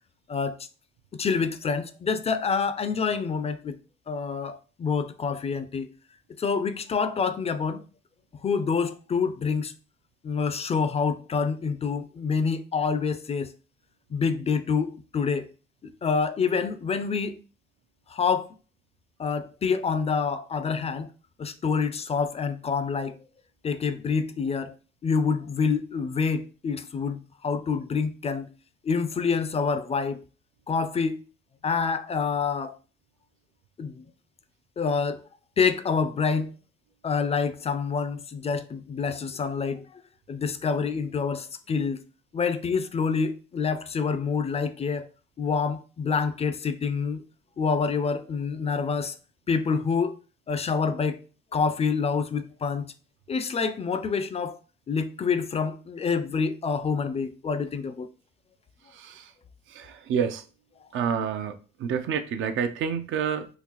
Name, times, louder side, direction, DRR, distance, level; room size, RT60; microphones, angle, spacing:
voice 1, 1.1-3.8 4.1-5.9 6.4-7.8 8.4-9.7 10.2-13.5 14.1-15.5 15.8-17.4 18.1-18.5 19.2-21.1 21.4-23.2 23.6-24.7 25.0-28.5 28.8-30.2 30.7-31.2 31.6-32.8 33.8-34.0 34.8-35.2 35.6-36.5 37.0-40.0 40.3-42.0 42.3-45.1 45.4-47.2 47.6-49.1 49.5-50.2 50.5-51.2 51.5-52.9 53.3-54.6 54.9-58.1, left 5 dB, 30° left, 0.4 m, -27 dB
voice 2, 58.9-59.3 59.7-60.4 60.9-63.5, right 7 dB, 75° right, 0.5 m, -29 dB
3.8 x 2.5 x 2.9 m
cardioid pair, 90°, 20 cm